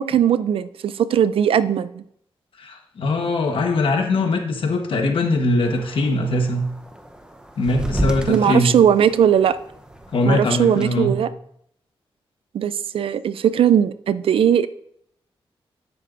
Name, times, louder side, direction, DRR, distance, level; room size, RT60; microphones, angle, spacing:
voice 1, 0.0-2.0 8.3-9.6 10.3-11.3 12.5-14.7, right 9 dB, 75° right, 15 dB, 0.4 m, -18 dB
voice 2, 2.6-6.7 7.6-8.8 10.1-11.1, left 2 dB, 70° left, 3 dB, 1.2 m, -21 dB
sound 1, 5.6-10.8, right 1 dB, 10° right, 0.8 m, -32 dB
10.0 x 7.7 x 2.6 m, 0.70 s
wide cardioid pair, 110°, 9 cm